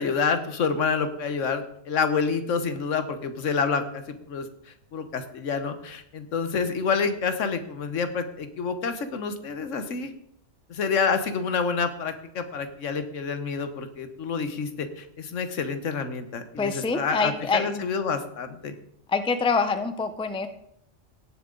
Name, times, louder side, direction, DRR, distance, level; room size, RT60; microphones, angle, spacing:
voice 1, 0.0-4.0 4.3-10.1 10.7-18.7, left 5 dB, 90° left, 9 dB, 1.4 m, -28 dB
voice 2, 16.6-17.8 19.1-20.5, left 4 dB, 5° left, 9 dB, 0.4 m, -25 dB
17.5 x 7.3 x 3.8 m, 0.73 s
omnidirectional pair, 1.2 m